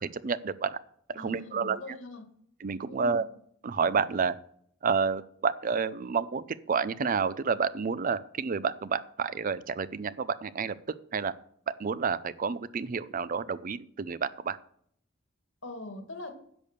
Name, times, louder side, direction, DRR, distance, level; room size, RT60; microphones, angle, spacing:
voice 1, 0.0-0.8 1.1-1.8 2.6-3.2 3.6-4.4 4.8-10.8 11.1-11.3 11.7-14.6, right 5 dB, 45° right, 16 dB, 0.5 m, -30 dB
voice 2, 1.1-2.3 2.9-3.3 15.6-16.3, left 2 dB, 75° left, 6 dB, 1.9 m, -42 dB
10.5 x 6.8 x 6.6 m, 0.65 s
head